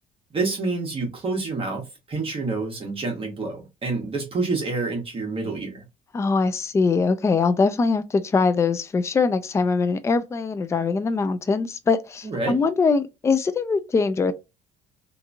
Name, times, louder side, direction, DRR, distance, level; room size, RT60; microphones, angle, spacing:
voice 1, 0.3-5.8 12.2-12.6, right 3 dB, 35° right, 1.0 m, -28 dB
voice 2, 6.1-14.3, left 4 dB, 15° left, 0.3 m, -22 dB
2.8 x 2.5 x 2.3 m
cardioid pair, 110°, 17 cm